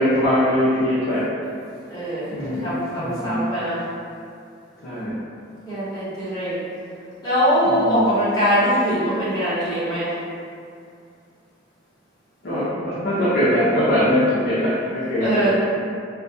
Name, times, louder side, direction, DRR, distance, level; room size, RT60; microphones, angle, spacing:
voice 1, 0.0-1.3 2.3-2.7 3.0-3.4 4.8-5.2 7.6-8.0 12.4-15.5, equal, 55° left, -11 dB, 0.5 m, -21 dB
voice 2, 1.9-2.3 2.5-3.8 5.6-6.5 7.2-10.2 15.2-15.5, equal, 20° left, -13 dB, 1.0 m, -22 dB
2.2 x 2.1 x 2.6 m, 2.4 s
head